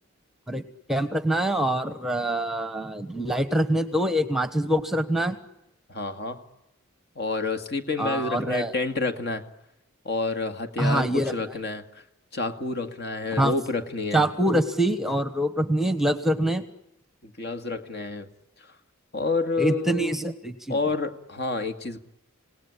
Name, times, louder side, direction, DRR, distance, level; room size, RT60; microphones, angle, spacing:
voice 1, 0.9-5.4 8.0-8.7 10.8-11.3 13.4-13.5 14.1-16.6 19.6-20.8, right 1 dB, ahead, 10 dB, 1.2 m, -25 dB
voice 2, 5.9-6.4 7.2-9.4 10.0-12.0 12.3-14.3 17.2-18.3 18.7-18.8 19.1-20.2 20.7-22.0, left 3 dB, 55° left, 7 dB, 2.2 m, -29 dB
27.5 x 18.5 x 10.0 m, 0.89 s
head